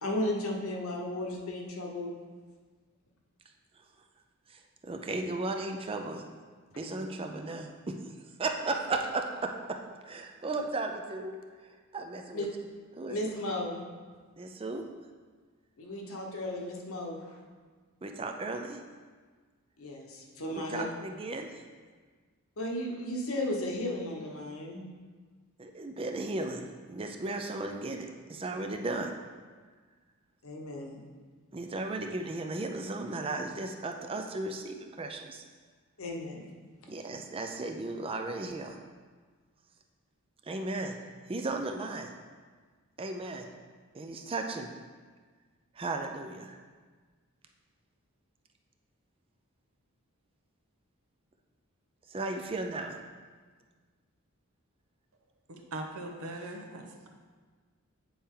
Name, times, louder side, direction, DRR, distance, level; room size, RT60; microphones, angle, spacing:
voice 1, 0.0-2.1 6.8-7.1 12.3-12.5 13.1-13.8 15.8-17.4 19.8-20.8 22.6-24.8 30.4-31.0 36.0-36.5, left 1 dB, 65° left, 0 dB, 1.0 m, -35 dB
voice 2, 4.5-6.2 6.8-8.0 8.4-9.5 10.0-11.4 11.6-12.5 12.9-13.2 14.4-14.8 18.0-18.8 20.5-21.6 25.6-29.1 31.5-35.4 36.9-38.8 40.4-41.0 41.3-42.1 43.0-43.5 43.9-44.7 45.7-46.6 52.1-53.0, right 2 dB, 25° right, 4 dB, 0.4 m, -35 dB
voice 3, 55.5-57.1, right 2 dB, 70° right, 3 dB, 0.8 m, -40 dB
8.6 x 4.2 x 3.7 m, 1.5 s
head